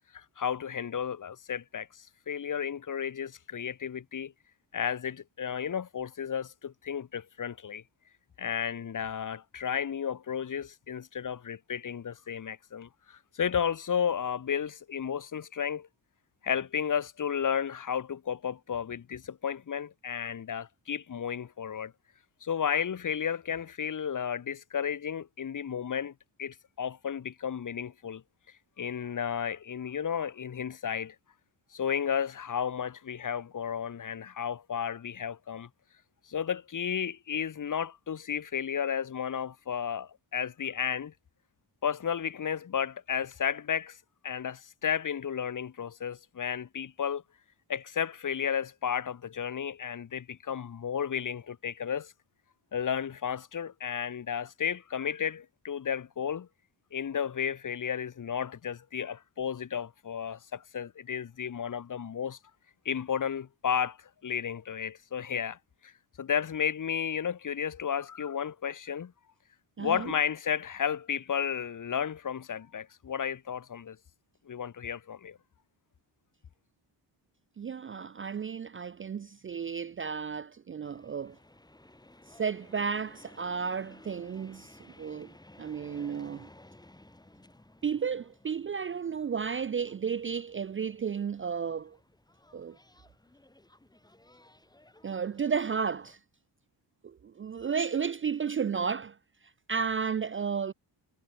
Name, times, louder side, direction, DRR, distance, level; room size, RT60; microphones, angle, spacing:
voice 1, 0.1-4.3 4.7-7.8 8.4-15.9 16.4-21.9 22.4-26.1 26.4-28.2 28.8-31.1 31.7-35.7 36.3-41.1 41.8-44.0 44.2-47.2 47.7-52.1 52.7-56.5 56.9-62.4 62.8-65.9 66.2-69.1 69.8-74.0 74.4-75.4, left 7 dB, 45° left, 1.6 m, -33 dB
voice 2, 69.8-70.1 77.6-81.4 82.4-85.3 85.6-86.5 87.8-92.0 92.5-92.8 95.0-96.2 97.0-99.2 99.7-100.7, right 6 dB, 30° right, 0.5 m, -33 dB
sound 1, 80.8-96.2, left 1 dB, 10° left, 3.6 m, -57 dB
cardioid pair, 110°, 44 cm